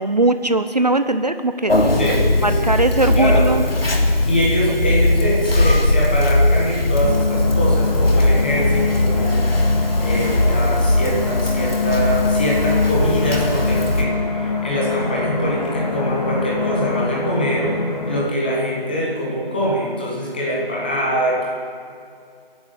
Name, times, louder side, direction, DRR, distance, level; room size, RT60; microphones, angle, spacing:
voice 1, 0.0-2.0 2.4-3.6, right 2 dB, 45° right, 9 dB, 0.8 m, -19 dB
Conversation, 1.7-14.0, left 1 dB, 70° left, 3.3 m, -19 dB
voice 2, 2.0-2.8 3.1-3.5 4.2-9.6 10.0-17.8 18.1-21.5, equal, 10° left, -4 dB, 1.7 m, -23 dB
sound 1, 7.0-18.3, left 4 dB, 40° left, 2.0 m, -25 dB
28.5 x 11.5 x 8.0 m, 2.3 s
figure-of-eight pair, 175°, 30 cm